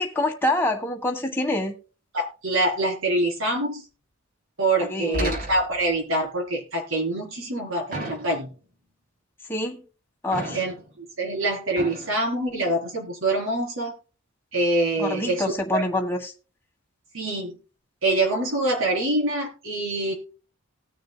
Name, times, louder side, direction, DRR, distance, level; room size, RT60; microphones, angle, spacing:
voice 1, 0.0-1.7 4.8-5.4 9.5-9.8 10.2-10.6 15.0-16.3, left 1 dB, 10° left, 1.5 m, -26 dB
voice 2, 2.1-3.8 4.6-8.5 10.5-10.7 11.2-13.9 14.5-15.4 15.7-15.8 17.1-17.6 18.0-20.1, right 2 dB, 70° right, 4.3 m, -25 dB
sound 1, 5.1-5.9 7.9-8.6 10.3-11.0 11.8-12.1, right 1 dB, 45° right, 3.7 m, -33 dB
19.0 x 6.7 x 2.3 m
head